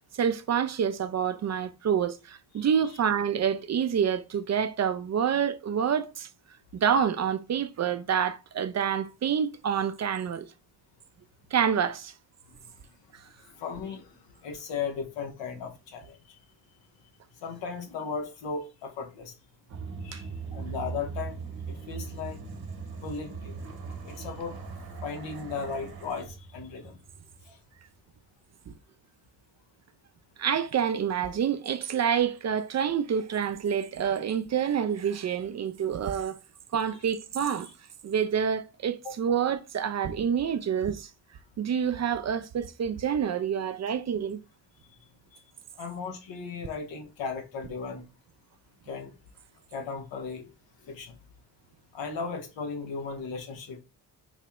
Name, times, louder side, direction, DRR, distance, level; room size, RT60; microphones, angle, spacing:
voice 1, 0.1-6.3 6.7-10.5 11.5-12.1 20.1-20.2 28.7-28.8 30.4-36.4 36.7-37.7 38.0-41.1 41.6-44.4, right 8 dB, 40° right, 0.4 m, -27 dB
voice 2, 2.6-3.0 13.5-14.1 14.4-16.2 17.4-19.3 20.0-21.4 21.7-22.4 23.0-23.5 24.0-24.6 25.0-27.0 27.5-27.6 39.0-39.1 45.3-45.4 45.8-48.1 48.9-49.1 49.7-50.5 50.8-51.1 51.9-53.8, left 5 dB, 85° left, 0.9 m, -36 dB
sound 1, 19.7-27.8, right 5 dB, 55° right, 0.9 m, -40 dB
4.1 x 2.2 x 2.9 m
supercardioid pair, 50°, 43 cm